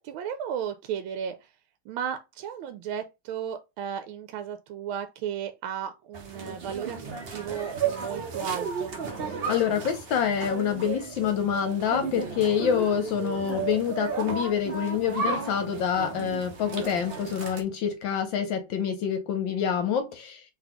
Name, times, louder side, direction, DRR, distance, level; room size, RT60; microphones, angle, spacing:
voice 1, 0.0-1.5 1.9-9.0, right 8 dB, 80° right, 1.4 m, -34 dB
sound 1, 6.1-17.6, right 5 dB, 50° right, 0.6 m, -34 dB
voice 2, 9.5-20.4, left 8 dB, 70° left, 1.4 m, -27 dB
4.0 x 3.4 x 2.9 m
omnidirectional pair, 2.2 m